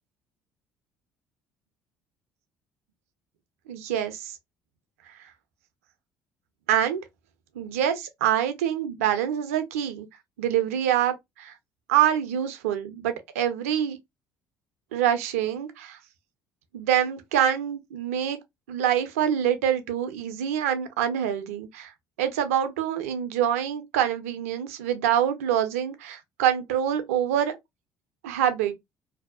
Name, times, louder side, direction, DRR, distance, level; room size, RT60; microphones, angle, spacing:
voice 1, 3.7-4.3 6.7-7.0 7.6-10.1 10.4-11.5 11.9-14.0 14.9-16.0 16.7-18.4 18.7-21.9 22.2-27.5 28.2-28.8, right 10 dB, 85° right, 0.5 m, -25 dB
2.6 x 2.1 x 2.3 m
hypercardioid pair, 60°, 8 cm